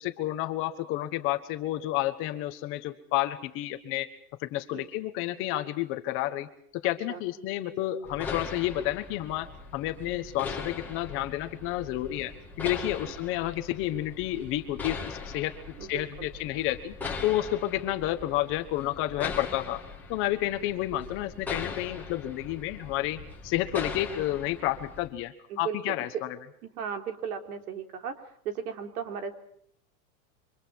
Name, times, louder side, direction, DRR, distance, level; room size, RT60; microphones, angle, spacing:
voice 1, 0.0-4.1 4.4-15.5 15.9-16.9 17.2-19.8 20.1-26.3, left 14 dB, 30° left, 9 dB, 1.2 m, -30 dB
sound 1, 8.0-25.1, left 4 dB, 5° left, 2.6 m, -40 dB
voice 2, 15.8-16.3 25.5-25.9 26.8-28.1 28.4-29.3, right 7 dB, 80° right, 6 dB, 3.9 m, -36 dB
29.0 x 25.0 x 4.6 m, 0.65 s
supercardioid pair, 180°, 44 cm